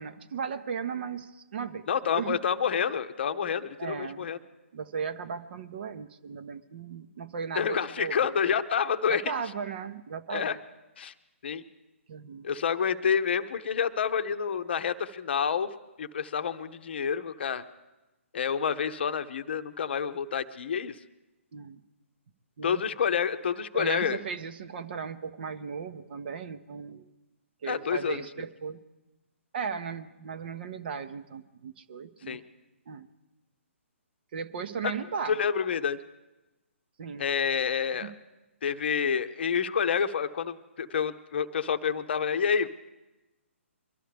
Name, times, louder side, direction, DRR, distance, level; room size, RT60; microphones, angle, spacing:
voice 1, 0.0-1.8 2.1-2.4 3.8-4.3 4.7-8.2 9.1-10.6 12.1-12.4 21.5-21.8 22.6-22.8 23.7-27.1 27.6-28.8 29.5-32.4 32.9-33.1 34.3-35.4 37.0-37.3 38.0-38.1, right 6 dB, 50° right, 10 dB, 0.8 m, -36 dB
voice 2, 1.9-4.4 7.5-9.2 10.3-10.6 11.0-11.1 11.4-11.6 12.4-15.7 16.0-17.7 18.3-21.0 22.6-24.2 27.7-28.2 32.3-32.4 34.8-34.9 35.3-36.0 37.2-38.1 38.6-42.7, left 7 dB, 55° left, 10 dB, 0.7 m, -28 dB
22.5 x 12.5 x 3.4 m, 1.0 s
figure-of-eight pair, 135°, 7 cm